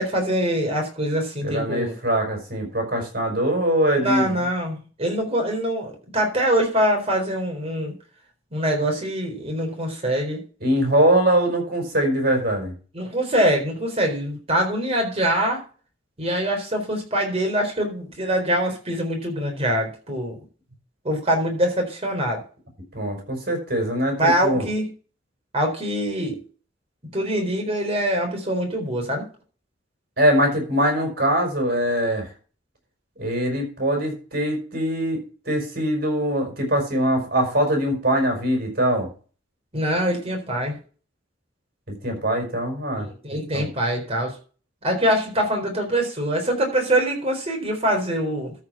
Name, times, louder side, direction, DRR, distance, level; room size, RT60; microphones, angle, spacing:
voice 1, 0.0-1.9 4.0-7.9 8.5-10.4 12.9-15.6 16.2-20.4 21.0-22.4 24.2-24.8 25.5-26.4 27.1-29.3 39.7-40.8 43.0-44.4 44.8-48.5, equal, 35° right, 2 dB, 4.0 m, -24 dB
voice 2, 1.4-4.4 10.6-12.7 22.9-24.6 30.2-32.3 33.2-39.1 41.9-43.7, right 1 dB, 55° right, 2 dB, 5.0 m, -22 dB
13.5 x 5.0 x 5.7 m, 0.38 s
head